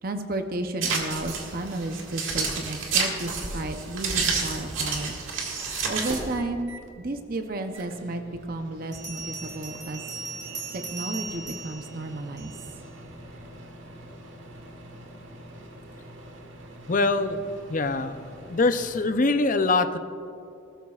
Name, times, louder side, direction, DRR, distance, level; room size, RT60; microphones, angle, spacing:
voice 1, 0.0-5.1 5.9-6.7 7.0-10.0 10.7-12.5, right 2 dB, 45° right, 6 dB, 0.7 m, -32 dB
sound 1, 0.8-6.4, right 4 dB, 90° right, 1.9 m, -29 dB
Microwave oven, 3.6-4.4 5.8-6.9 7.3-19.1, right 1 dB, 75° right, 1.4 m, -45 dB
Bell, 8.9-12.8, right 4 dB, 20° right, 1.7 m, -38 dB
voice 2, 16.9-17.4 17.7-18.1 18.5-20.0, left 3 dB, 40° left, 9 dB, 0.6 m, -23 dB
18.0 x 13.5 x 2.4 m, 2.6 s
head